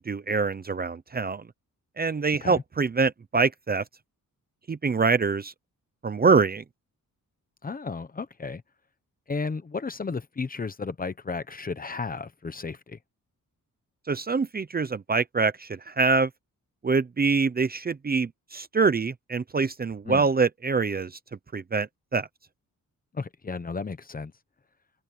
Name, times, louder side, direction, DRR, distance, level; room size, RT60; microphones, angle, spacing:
voice 1, 0.0-1.4 2.0-3.8 4.7-5.5 6.0-6.6 14.1-16.3 16.8-21.1 21.5-22.3, right 4 dB, 25° right, 0.7 m, -25 dB
voice 2, 7.6-8.6 9.3-13.0 20.1-20.3 23.1-24.3, left 4 dB, 25° left, 0.9 m, -33 dB
wide cardioid pair, 165°, 34 cm